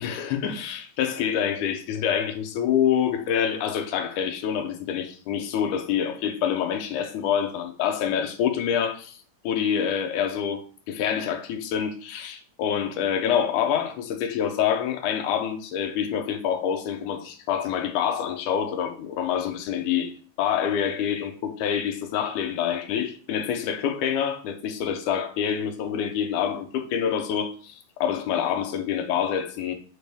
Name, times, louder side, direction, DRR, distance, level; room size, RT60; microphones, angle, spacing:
voice 1, 0.0-9.2 9.4-10.6 10.9-29.7, left 8 dB, 75° left, 1.9 m, -26 dB
7.3 x 4.5 x 3.5 m
omnidirectional pair, 4.2 m